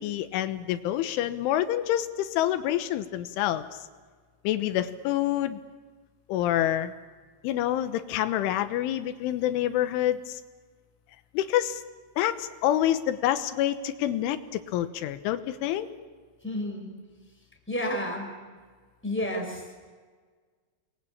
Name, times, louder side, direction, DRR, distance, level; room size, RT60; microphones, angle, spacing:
voice 1, 0.0-3.7 4.4-5.6 6.3-6.9 7.4-10.4 11.3-11.8 12.2-15.9, left 12 dB, 85° left, 11 dB, 3.6 m, -27 dB
voice 2, 16.4-16.9 17.7-18.3 19.0-19.7, left 1 dB, ahead, 1 dB, 5.1 m, -31 dB
29.5 x 21.5 x 8.7 m, 1.5 s
omnidirectional pair, 5.4 m